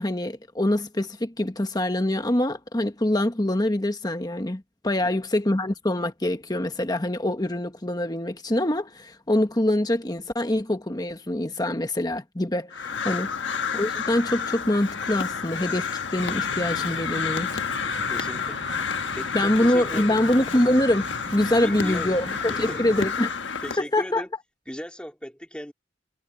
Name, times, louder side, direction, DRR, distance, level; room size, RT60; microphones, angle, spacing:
voice 1, 0.0-17.5 19.3-23.3 23.8-24.2, left 1 dB, 20° left, 1.3 m, -25 dB
Crow, 12.7-23.8, left 6 dB, 80° left, 1.4 m, -30 dB
sound 1, 16.2-23.1, right 1 dB, 75° right, 4.5 m, -40 dB
voice 2, 18.1-18.6 19.2-20.2 21.6-22.2 22.5-23.1 23.6-24.3 24.7-25.7, equal, 5° left, 2.4 m, -37 dB
head